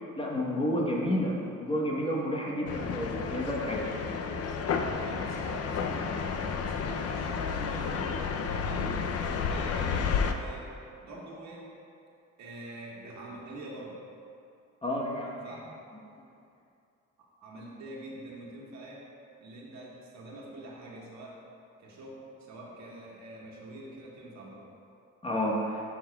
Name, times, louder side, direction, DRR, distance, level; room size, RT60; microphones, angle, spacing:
voice 1, 0.2-3.9 14.8-15.5 25.2-25.8, equal, 20° left, -2 dB, 1.0 m, -30 dB
sound 1, 2.7-10.3, left 6 dB, 55° left, 0.5 m, -31 dB
voice 2, 4.7-9.0 9.5-11.8 12.4-14.0 15.3-15.7 17.4-19.1 19.4-21.5 21.8-24.7, right 1 dB, 65° right, -3 dB, 1.5 m, -45 dB
11.5 x 5.9 x 2.3 m, 2.5 s
cardioid pair, 90°, 30 cm